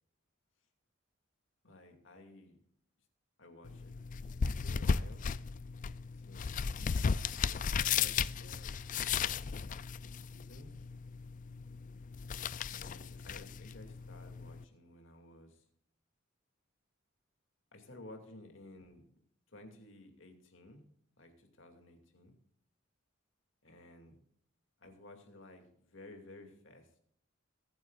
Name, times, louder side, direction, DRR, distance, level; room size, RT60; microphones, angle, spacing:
voice 1, 1.6-2.6 3.4-5.2 6.1-8.8 9.0-10.8 12.7-15.6 17.7-19.0 19.5-20.9 21.2-22.3 23.6-24.2 24.8-27.0, left 1 dB, 70° left, 4 dB, 2.5 m, -55 dB
sound 1, 3.6-14.6, left 6 dB, 40° left, 0.4 m, -36 dB
22.0 x 9.4 x 2.5 m, 0.68 s
head